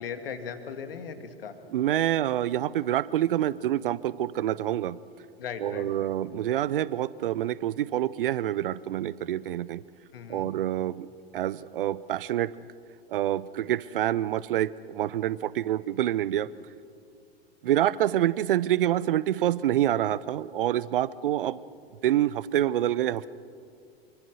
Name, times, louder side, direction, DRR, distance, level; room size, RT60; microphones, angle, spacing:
voice 1, 0.0-1.6 5.4-6.1 10.1-10.5, left 6 dB, 65° left, 7 dB, 2.2 m, -38 dB
voice 2, 1.7-5.0 5.6-9.8 10.3-11.1 11.3-12.6 13.1-16.5 17.6-21.6 22.0-23.3, right 12 dB, 60° right, 20 dB, 0.7 m, -27 dB
25.0 x 24.0 x 6.3 m, 2.4 s
figure-of-eight pair, 95°, 31 cm